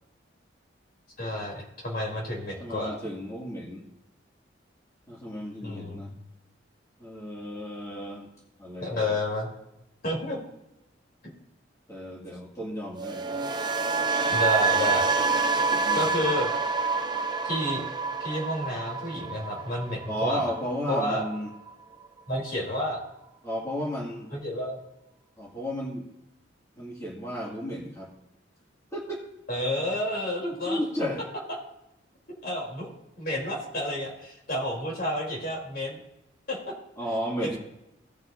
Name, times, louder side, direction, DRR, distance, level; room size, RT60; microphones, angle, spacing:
voice 1, 1.2-2.9 5.6-6.2 8.8-9.5 10.0-10.4 14.3-15.0 15.9-16.5 17.4-17.8 18.2-20.4 20.9-21.2 22.3-23.0 24.3-24.8 29.5-30.8 32.4-32.9 33.2-36.0 36.5-36.6 37.4-37.6, left 1 dB, 55° left, -4 dB, 3.3 m, -30 dB
voice 2, 2.6-3.8 5.1-6.1 7.0-8.3 8.6-9.1 11.9-13.4 15.7-16.3 20.1-21.5 23.4-24.3 25.4-26.1 26.8-28.1 28.9-29.3 30.7-31.2 37.0-37.6, equal, 15° left, -6 dB, 2.1 m, -33 dB
sound 1, 13.0-21.1 21.3-21.7, right 4 dB, 25° right, 0.6 m, -27 dB
18.0 x 6.1 x 2.6 m, 0.90 s
head